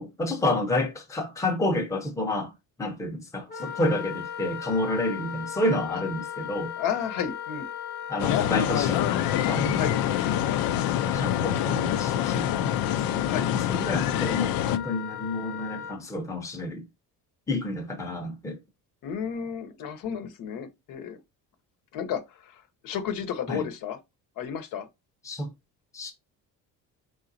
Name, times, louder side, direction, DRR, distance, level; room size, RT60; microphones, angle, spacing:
voice 1, 0.0-2.5 2.8-6.7 8.1-9.2 9.5-9.9 11.0-12.8 13.1-13.3 13.5-16.8 17.5-18.6 23.5-23.7 25.2-25.5 25.9-26.1, left 2 dB, 10° left, 0.8 m, -29 dB
Wind instrument woodwind instrument, 3.5-16.0, left 9 dB, 30° left, 1.2 m, -37 dB
voice 2, 6.8-7.7 9.7-10.0 13.3-13.5 19.0-21.2 21.9-24.0 24.4-24.9, left 8 dB, 70° left, 0.9 m, -32 dB
sound 1, 8.2-14.8, left 11 dB, 85° left, 0.6 m, -26 dB
5.1 x 3.8 x 2.6 m
cardioid pair, 155°, 35 cm